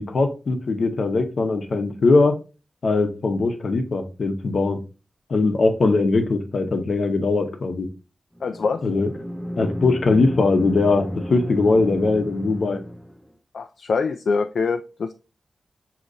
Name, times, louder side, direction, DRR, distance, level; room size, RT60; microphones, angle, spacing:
voice 1, 0.0-2.4 2.8-4.8 5.3-7.9 8.8-9.1 9.6-12.8, left 3 dB, 65° left, 5 dB, 0.8 m, -20 dB
voice 2, 8.4-8.8 13.5-15.1, left 4 dB, 80° left, 6 dB, 0.3 m, -24 dB
sound 1, 8.4-13.3, equal, ahead, 0.4 m, -33 dB
6.3 x 2.9 x 2.6 m, 0.31 s
wide cardioid pair, 125°, 0 cm